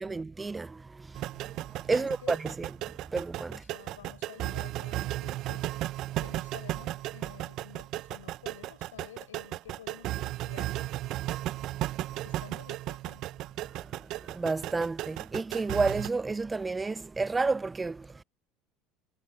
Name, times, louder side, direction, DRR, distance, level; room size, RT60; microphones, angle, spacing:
voice 1, 0.0-2.7 3.0-3.6 11.2-11.3 11.8-11.9 13.8-18.2, right 3 dB, 20° right, 0.5 m, -31 dB
sound 1, 1.1-16.1, right 15 dB, 55° right, 0.9 m, -35 dB
voice 2, 1.9-2.6 3.5-5.7 6.2-10.8 12.2-13.2, left 10 dB, 85° left, 6.2 m, -51 dB
hypercardioid pair, 75°, 0 cm